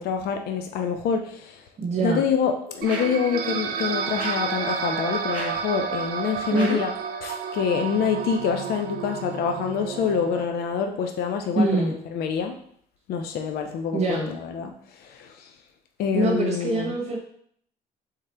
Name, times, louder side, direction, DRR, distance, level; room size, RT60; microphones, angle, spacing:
voice 1, 0.0-1.7 2.0-6.9 7.2-12.6 13.1-15.5 16.0-16.9, left 6 dB, 70° left, 4 dB, 0.5 m, -26 dB
voice 2, 1.8-2.2 6.5-6.8 11.5-11.9 13.9-14.3 16.1-17.2, right 2 dB, 40° right, 0 dB, 1.0 m, -24 dB
sound 1, 2.8-3.3 4.1-4.5 5.3-5.7 6.5-6.9, right 1 dB, 5° right, 1.8 m, -36 dB
sound 2, 2.8-10.5, right 6 dB, 60° right, 0.6 m, -31 dB
3.7 x 3.3 x 4.3 m, 0.64 s
cardioid pair, 110°, 17 cm